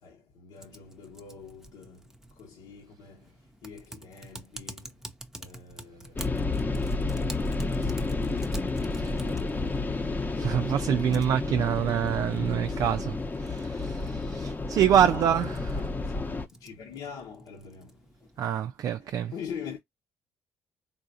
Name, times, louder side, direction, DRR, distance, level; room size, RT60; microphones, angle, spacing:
voice 1, 0.0-5.1 5.4-8.5 8.8-10.4 12.7-12.8 15.0-18.3 19.2-19.8, left 6 dB, 75° left, 1.1 m, -45 dB
Typing, 0.6-18.6, right 1 dB, 5° right, 0.7 m, -49 dB
sound 1, 6.1-16.5, left 3 dB, 25° left, 0.8 m, -31 dB
voice 2, 10.4-15.8 18.4-19.3, right 9 dB, 60° right, 0.4 m, -26 dB
3.8 x 2.5 x 2.6 m
supercardioid pair, 75°, 7 cm